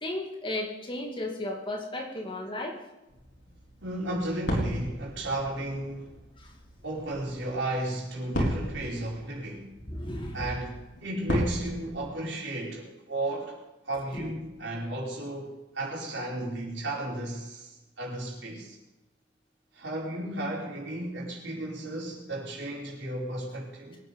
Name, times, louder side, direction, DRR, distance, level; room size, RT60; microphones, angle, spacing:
voice 1, 0.0-2.8 6.4-6.5 9.9-10.5 14.2-14.3, left 1 dB, 25° left, 0 dB, 2.4 m, -34 dB
sound 1, 3.1-12.1, equal, 70° left, 4.5 m, -35 dB
voice 2, 3.8-6.2 6.8-9.7 10.3-13.6 13.8-18.8 19.7-24.0, right 1 dB, 70° right, -3 dB, 5.0 m, -34 dB
22.5 x 9.6 x 5.4 m, 1.0 s
head